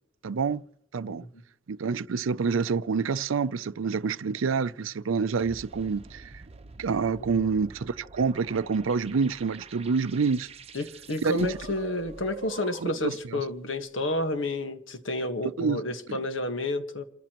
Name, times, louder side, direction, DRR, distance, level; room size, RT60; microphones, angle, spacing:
voice 1, 0.2-0.6 0.9-1.2 1.7-6.3 6.8-10.5 11.2-11.6 12.8-13.4 15.4-15.8 16.1-16.2, right 5 dB, 80° right, 0.5 m, -27 dB
sound 1, 5.4-13.2, right 3 dB, 30° right, 0.8 m, -46 dB
voice 2, 10.7-17.0, left 1 dB, 70° left, 1.5 m, -30 dB
28.5 x 14.0 x 3.0 m
head